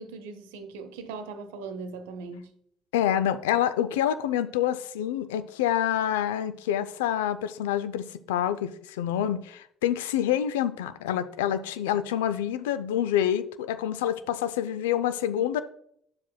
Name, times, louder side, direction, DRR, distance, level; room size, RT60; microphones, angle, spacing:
voice 1, 0.0-2.5, right 4 dB, 80° right, 0.9 m, -39 dB
voice 2, 2.9-15.6, left 10 dB, 80° left, 0.4 m, -27 dB
10.5 x 7.4 x 2.3 m
hypercardioid pair, 55°, 0 cm